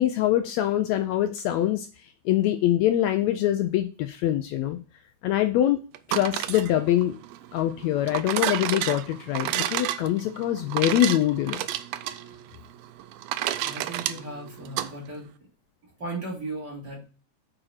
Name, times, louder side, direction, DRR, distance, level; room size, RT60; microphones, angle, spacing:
voice 1, 0.0-1.9 2.2-4.8 5.2-5.8 6.1-7.2 7.5-11.6, left 12 dB, 80° left, 9 dB, 1.7 m, -24 dB
sound 1, 5.9-14.9, right 12 dB, 80° right, 1.5 m, -31 dB
voice 2, 13.6-15.3 16.0-17.1, right 2 dB, 35° right, -4 dB, 3.2 m, -36 dB
6.3 x 4.9 x 5.7 m, 0.35 s
omnidirectional pair, 3.4 m